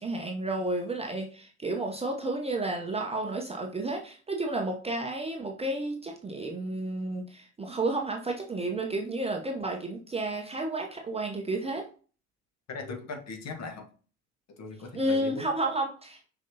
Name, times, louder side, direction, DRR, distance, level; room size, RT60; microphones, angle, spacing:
voice 1, 0.0-11.8 14.9-16.2, right 2 dB, 15° right, 1 dB, 0.9 m, -31 dB
voice 2, 12.7-13.8 14.6-15.5, left 3 dB, 35° left, 4 dB, 1.6 m, -39 dB
6.2 x 5.3 x 2.8 m, 0.39 s
figure-of-eight pair, 70°, 46 cm